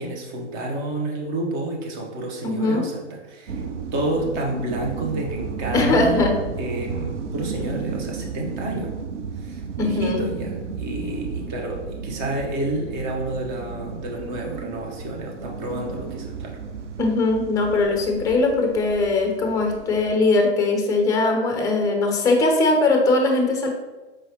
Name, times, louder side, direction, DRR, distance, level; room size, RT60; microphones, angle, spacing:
voice 1, 0.0-3.6 3.9-6.2 6.6-8.9 9.4-16.6, right 1 dB, 40° right, 0 dB, 1.1 m, -30 dB
voice 2, 2.4-2.8 5.7-6.3 9.8-10.2 17.0-23.7, left 2 dB, 10° left, 3 dB, 0.4 m, -20 dB
sound 1, 3.5-20.2, right 5 dB, 80° right, 0.6 m, -33 dB
4.8 x 3.1 x 2.9 m, 1.1 s
hypercardioid pair, 115°, 35 cm